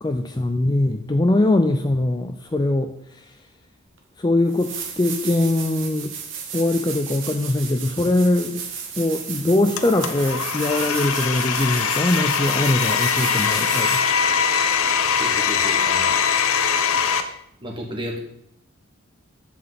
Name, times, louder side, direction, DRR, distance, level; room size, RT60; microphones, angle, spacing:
voice 1, 0.0-3.4 4.2-6.1 6.5-8.6 9.0-14.1, left 2 dB, 20° left, 6 dB, 0.4 m, -22 dB
sound 1, 4.0-4.1 4.5-14.2 17.0-17.1, right 6 dB, 60° right, 1.6 m, -34 dB
Domestic sounds home sounds, 9.8-17.2, left 7 dB, 80° left, 0.9 m, -22 dB
voice 2, 13.1-13.5 15.1-16.2 17.6-18.2, equal, 25° right, -1 dB, 1.9 m, -33 dB
11.0 x 7.7 x 4.0 m, 0.73 s
head